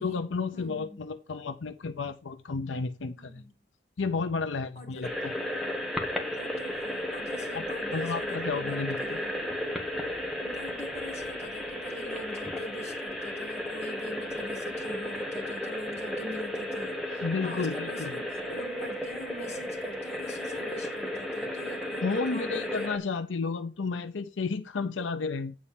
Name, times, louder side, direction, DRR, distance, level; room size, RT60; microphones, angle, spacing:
voice 1, 0.0-3.4 4.0-5.3 7.5-7.6 7.9-9.2 17.2-18.2 22.0-25.5, left 4 dB, 85° left, 0.6 m, -32 dB
voice 2, 0.5-1.0 3.2-3.5 4.8-5.1 6.3-9.3 10.4-18.2 18.5-22.9, left 1 dB, 35° left, 2.4 m, -44 dB
sound 1, 5.0-23.0, left 1 dB, ahead, 1.3 m, -34 dB
8.6 x 4.3 x 6.8 m
head